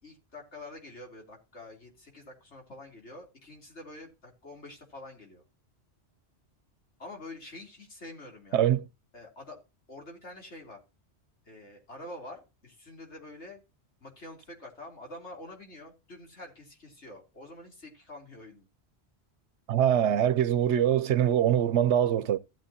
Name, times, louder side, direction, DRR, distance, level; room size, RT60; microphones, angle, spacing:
voice 1, 0.0-5.4 7.0-8.6 9.1-9.6 9.9-10.8 11.5-13.6 14.0-18.7, left 2 dB, 85° left, 3.6 m, -46 dB
voice 2, 8.5-8.8 19.7-22.4, right 10 dB, 85° right, 1.0 m, -23 dB
15.5 x 7.5 x 2.8 m
omnidirectional pair, 1.1 m